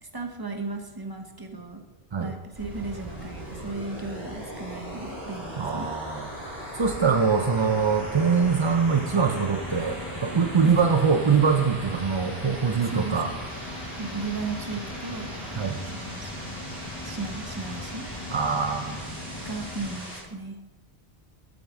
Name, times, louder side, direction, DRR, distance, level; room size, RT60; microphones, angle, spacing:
voice 1, 0.0-1.8 2.2-5.9 10.6-10.8 12.7-13.4 14.0-15.4 15.9-16.3 17.0-18.1 19.4-20.6, right 3 dB, 20° right, 4 dB, 1.0 m, -35 dB
sound 1, 2.5-20.2, equal, 65° right, 4.3 m, -39 dB
voice 2, 5.6-13.3 15.6-15.8 18.3-19.2, right 5 dB, 40° right, 5 dB, 0.4 m, -23 dB
sound 2, 6.3-20.0, left 2 dB, 20° left, 1.0 m, -40 dB
13.0 x 8.6 x 3.7 m, 1.2 s
omnidirectional pair, 1.1 m